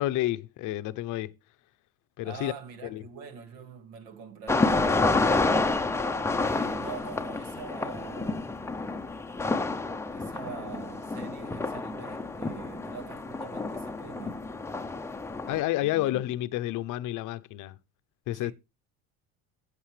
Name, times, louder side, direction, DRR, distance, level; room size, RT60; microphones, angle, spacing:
voice 1, 0.0-1.3 2.2-2.5 2.8-3.0 15.5-17.7 18.3-18.5, left 15 dB, 55° left, 0.7 m, -30 dB
voice 2, 2.2-5.7 6.4-8.7 10.1-14.4 15.8-16.3 18.3-18.5, right 6 dB, 80° right, 2.3 m, -44 dB
sound 1, 4.5-15.6, left 3 dB, 5° left, 0.6 m, -29 dB
11.5 x 8.2 x 3.2 m
supercardioid pair, 115°, 38 cm